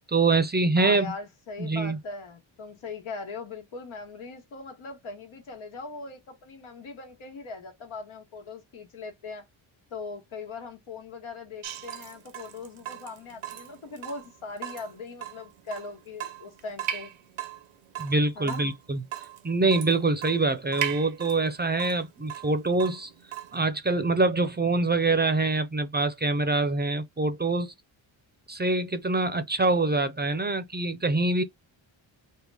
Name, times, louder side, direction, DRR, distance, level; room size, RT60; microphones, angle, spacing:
voice 1, 0.1-1.1 1.6-2.0 18.0-19.0 19.4-23.1 23.5-27.7 28.5-31.4, right 3 dB, 20° right, 0.5 m, -25 dB
voice 2, 0.8-9.5 9.9-17.1 18.3-18.6, left 4 dB, 85° left, 1.3 m, -40 dB
Water tap faucet / Drip, 11.6-23.6, right 10 dB, 90° right, 0.8 m, -38 dB
3.6 x 2.1 x 3.3 m
cardioid pair, 75°, 48 cm